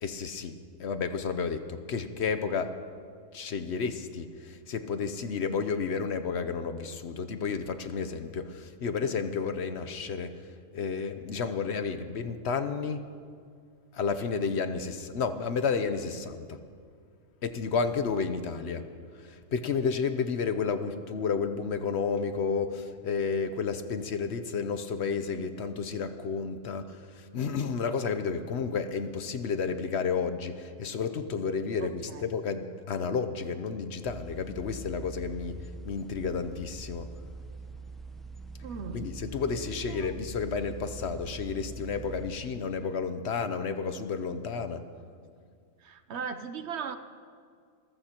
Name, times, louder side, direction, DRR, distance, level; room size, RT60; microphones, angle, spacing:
voice 1, 0.0-2.7 3.3-10.3 10.7-13.0 13.9-16.6 17.4-18.8 19.1-35.6 35.8-37.1 38.9-44.8, left 5 dB, 60° left, 9 dB, 0.9 m, -31 dB
voice 2, 31.8-32.2 38.6-39.0 39.5-40.1 45.8-47.0, right 6 dB, 60° right, 10 dB, 0.9 m, -38 dB
sound 1, 34.0-42.3, right 3 dB, ahead, 0.6 m, -43 dB
27.0 x 15.0 x 2.9 m, 2.2 s
omnidirectional pair, 1.3 m